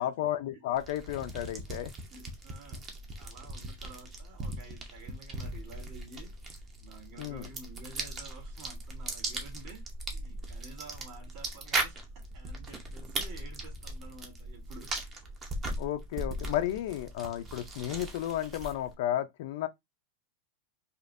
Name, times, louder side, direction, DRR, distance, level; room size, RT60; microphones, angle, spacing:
voice 1, 0.0-1.9 7.2-7.5 15.8-19.7, left 12 dB, 55° left, 0.5 m, -33 dB
sound 1, 0.8-18.9, right 2 dB, 20° right, 0.8 m, -39 dB
voice 2, 2.1-9.8 10.1-12.1 12.3-14.9 15.5-15.6, right 3 dB, 40° right, 2.9 m, -51 dB
5.1 x 2.5 x 2.5 m
supercardioid pair, 170°, 0 cm